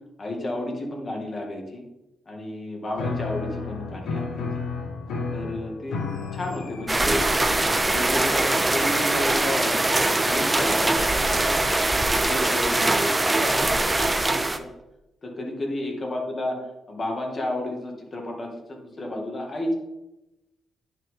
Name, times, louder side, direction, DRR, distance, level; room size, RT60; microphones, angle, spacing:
voice 1, 0.2-1.8 2.3-4.4 5.3-6.0 6.3-7.3 7.6-11.7 12.1-14.7 15.2-16.6 16.9-19.8, left 1 dB, 35° left, 1 dB, 2.1 m, -32 dB
Piano, 2.9-11.4, left 4 dB, 90° left, 1.4 m, -34 dB
sound 1, 6.9-14.6, right 2 dB, 15° right, 0.6 m, -22 dB
9.9 x 6.4 x 3.8 m, 0.94 s
cardioid pair, 105°, 0 cm